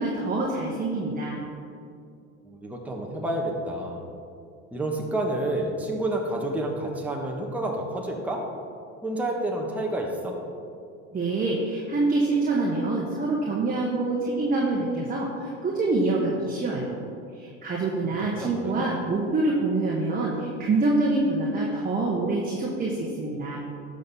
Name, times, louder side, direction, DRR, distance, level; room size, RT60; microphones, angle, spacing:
voice 1, 0.0-1.4 11.1-16.9 17.3-23.6, right 2 dB, 25° right, -3 dB, 1.5 m, -26 dB
voice 2, 2.4-4.0 4.7-8.4 9.0-10.3 18.4-18.9, right 1 dB, 5° right, -1 dB, 1.4 m, -29 dB
11.5 x 6.4 x 4.1 m, 2.5 s
supercardioid pair, 90°, 37 cm